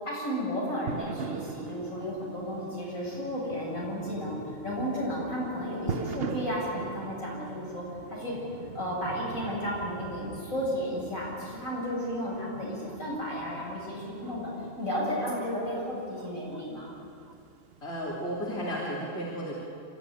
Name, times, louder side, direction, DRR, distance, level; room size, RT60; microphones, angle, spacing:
voice 1, 0.0-4.4 4.6-8.3 8.7-14.5 14.8-16.9, equal, 85° left, -4 dB, 7.9 m, -33 dB
sound 1, 0.9-18.9, right 6 dB, 50° right, 1.0 m, -42 dB
voice 2, 17.8-19.5, equal, 55° left, -5 dB, 3.6 m, -33 dB
27.0 x 13.5 x 9.8 m, 2.4 s
omnidirectional pair, 1.4 m